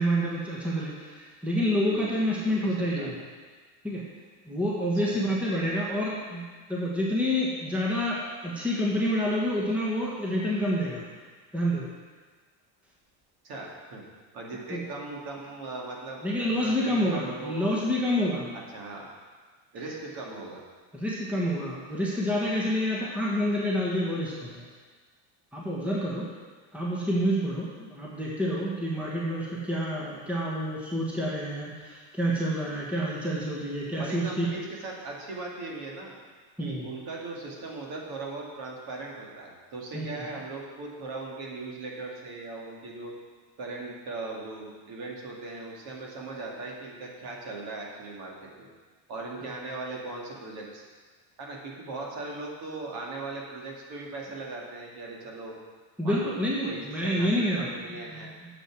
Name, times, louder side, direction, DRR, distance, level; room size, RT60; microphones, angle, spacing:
voice 1, 0.0-3.1 3.8-4.0 4.4-11.1 11.5-11.9 14.7-14.8 16.2-18.5 20.9-24.7 25.5-26.3 26.7-34.5 36.6-36.9 39.9-40.1 56.0-58.2, equal, 5° right, -5 dB, 1.4 m, -28 dB
voice 2, 1.7-3.1 5.0-5.3 13.4-14.0 14.3-17.9 18.5-19.1 19.7-20.6 34.0-36.2 36.6-43.1 43.6-48.7 49.1-50.8 51.4-55.5 56.0-58.3, right 3 dB, 50° right, -2 dB, 2.3 m, -39 dB
9.4 x 7.6 x 6.1 m, 1.5 s
cardioid pair, 155°, 49 cm